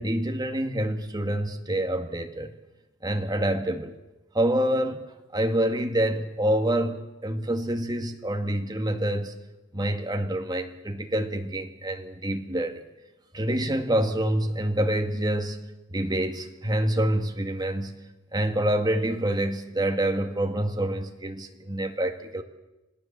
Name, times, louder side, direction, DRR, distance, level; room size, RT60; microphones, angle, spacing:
voice 1, 0.0-2.5 3.0-4.0 4.3-5.0 5.3-9.3 9.7-12.9 13.3-17.9 18.3-22.4, right 1 dB, 20° right, 5 dB, 1.9 m, -27 dB
27.0 x 18.0 x 7.4 m, 1.0 s
head